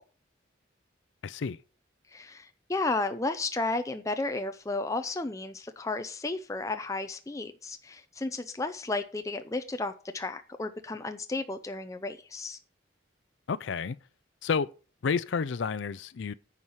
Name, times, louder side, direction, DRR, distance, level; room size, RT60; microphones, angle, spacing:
voice 1, 1.2-1.6 13.5-14.0 14.4-14.7 15.0-16.3, left 5 dB, 75° left, 0.4 m, -30 dB
voice 2, 2.1-12.6, left 2 dB, 15° left, 0.5 m, -33 dB
9.7 x 4.7 x 7.2 m
head